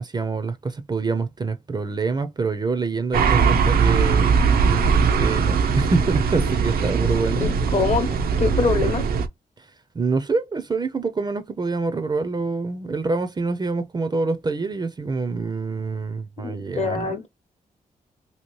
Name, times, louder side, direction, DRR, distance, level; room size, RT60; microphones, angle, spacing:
voice 1, 0.0-4.4 5.2-7.5 9.9-17.2, right 4 dB, 30° right, 0.4 m, -26 dB
sound 1, 3.1-9.3, right 5 dB, 90° right, 0.5 m, -20 dB
voice 2, 7.4-8.1 8.4-9.0 16.4-17.3, left 4 dB, 45° left, 0.8 m, -24 dB
2.8 x 2.8 x 3.0 m
cardioid pair, 95°, 15 cm